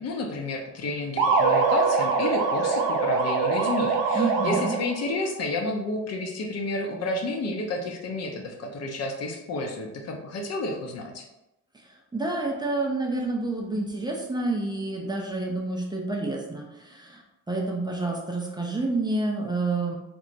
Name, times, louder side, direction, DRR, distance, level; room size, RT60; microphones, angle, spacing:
voice 1, 0.0-11.2, left 2 dB, 60° left, 1 dB, 0.6 m, -31 dB
sound 1, 1.2-5.1, right 4 dB, 85° right, 0.5 m, -23 dB
voice 2, 4.1-4.7 11.7-20.0, right 2 dB, 15° right, -1 dB, 0.4 m, -29 dB
2.9 x 2.2 x 2.5 m, 0.92 s
cardioid pair, 90°, 30 cm